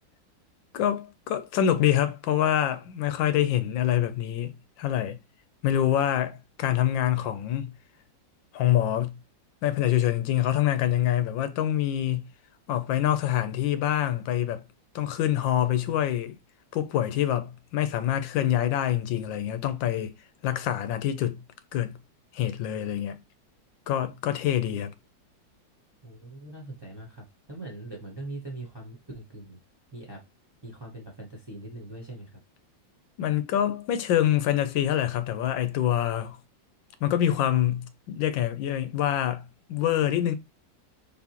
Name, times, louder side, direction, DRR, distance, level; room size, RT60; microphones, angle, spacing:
voice 1, 0.7-5.2 5.6-7.7 8.5-9.1 9.6-12.2 12.7-14.6 14.9-16.4 16.7-20.1 20.4-21.4 21.7-21.9 22.3-23.2 23.9-24.9 33.2-36.4 37.0-39.4 39.7-40.3, left 11 dB, 85° left, 1.4 m, -25 dB
voice 2, 26.0-27.2 27.5-29.6 29.9-30.2 30.6-32.4, right 2 dB, 15° right, 0.9 m, -41 dB
4.1 x 3.6 x 2.9 m
omnidirectional pair, 2.0 m